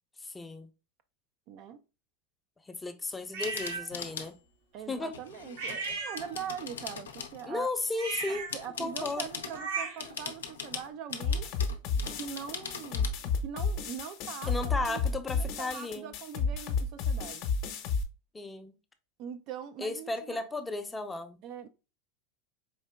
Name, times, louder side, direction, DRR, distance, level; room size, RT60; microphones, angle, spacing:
voice 1, 0.2-0.7 2.6-4.3 4.9-5.2 7.5-8.5 8.8-9.2 14.5-16.1 18.3-18.7 19.8-21.4, left 3 dB, 15° left, 0.6 m, -35 dB
voice 2, 1.5-1.8 4.7-7.7 8.3-11.5 12.2-14.5 14.8-15.0 15.3-17.5 19.2-20.4 21.4-21.7, right 8 dB, 50° right, 0.4 m, -42 dB
sound 1, 3.3-3.9 5.6-6.6 7.9-10.2, right 4 dB, 75° right, 1.3 m, -37 dB
sound 2, 3.4-4.3 5.1-7.5 8.1-9.6 10.0-13.1, left 6 dB, 85° left, 0.5 m, -41 dB
sound 3, 11.2-18.0, left 4 dB, 55° left, 0.8 m, -31 dB
4.5 x 2.8 x 2.2 m
hypercardioid pair, 95°, 0 cm